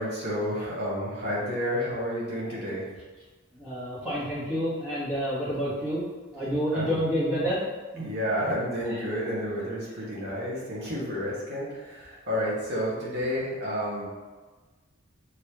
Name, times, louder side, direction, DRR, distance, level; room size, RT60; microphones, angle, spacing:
voice 1, 0.0-2.9 6.7-7.0 8.0-14.1, equal, 50° right, -7 dB, 1.5 m, -30 dB
voice 2, 3.5-6.0 6.3-7.6 7.9-8.0, equal, 5° right, -11 dB, 1.4 m, -28 dB
5.6 x 3.3 x 2.9 m, 1.3 s
head